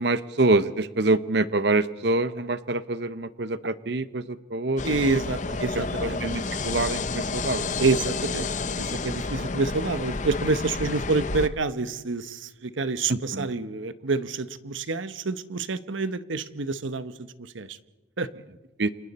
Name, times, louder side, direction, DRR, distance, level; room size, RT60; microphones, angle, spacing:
voice 1, 0.0-5.0 6.0-7.7 13.1-13.5 18.8-18.9, right 2 dB, 60° right, 14 dB, 0.8 m, -26 dB
sound 1, 4.8-11.5, left 3 dB, 40° left, 0.8 m, -30 dB
voice 2, 4.8-6.2 7.8-17.1 17.4-17.8 18.2-18.3, right 3 dB, 90° right, 13 dB, 1.0 m, -28 dB
29.0 x 27.0 x 4.3 m, 1.1 s
head